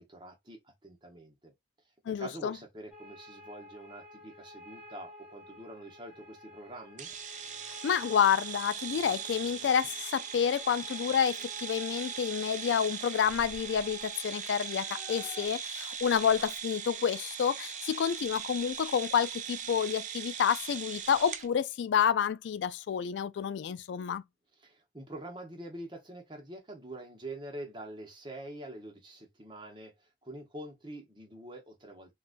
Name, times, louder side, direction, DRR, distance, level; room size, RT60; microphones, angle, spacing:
voice 1, 0.0-1.5 2.1-7.1 24.6-32.1, right 1 dB, 25° right, 0.9 m, -45 dB
voice 2, 2.1-2.5 7.8-24.2, left 7 dB, 85° left, 0.3 m, -29 dB
sound 1, 2.9-15.5, left 1 dB, 10° right, 1.4 m, -52 dB
sound 2, 7.0-21.5, right 8 dB, 45° right, 0.4 m, -40 dB
3.8 x 2.3 x 2.4 m
head